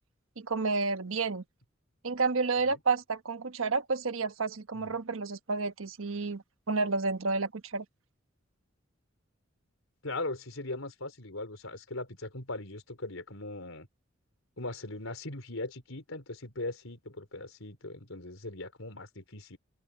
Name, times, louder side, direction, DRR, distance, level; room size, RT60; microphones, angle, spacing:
voice 1, 0.4-1.4 2.0-7.8, right 4 dB, 85° right, 1.2 m, -30 dB
voice 2, 10.0-13.9 14.6-19.6, left 2 dB, 85° left, 4.4 m, -39 dB
open air
head